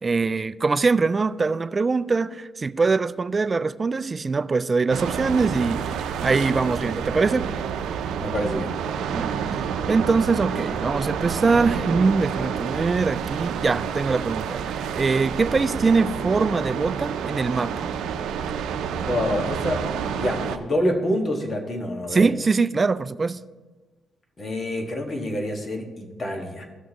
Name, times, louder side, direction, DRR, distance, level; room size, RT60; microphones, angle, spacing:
voice 1, 0.0-7.5 9.1-17.9 22.1-23.5, right 4 dB, 30° right, 0.3 m, -23 dB
sound 1, 4.9-20.6, right 7 dB, 85° right, 0.6 m, -29 dB
voice 2, 8.2-8.8 19.1-19.8 20.1-22.3 24.4-26.6, left 1 dB, 35° left, 1.6 m, -27 dB
15.5 x 6.3 x 3.0 m
cardioid pair, 90°, 0 cm